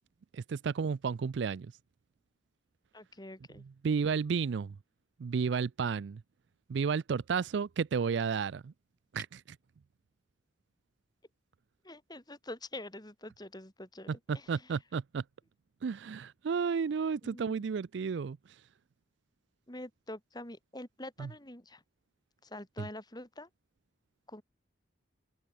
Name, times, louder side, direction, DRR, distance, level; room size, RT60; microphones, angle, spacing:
voice 1, 0.3-1.7 3.6-4.8 5.2-6.2 6.7-8.7 9.1-9.4 14.1-15.2 15.8-18.4 21.2-21.3 22.8-22.9, right 6 dB, 70° right, 0.4 m, -32 dB
voice 2, 2.9-3.6 11.8-14.1 14.3-14.4 17.2-17.6 19.7-21.8 22.4-23.5 24.3-24.4, left 1 dB, 20° left, 3.5 m, -45 dB
open air
head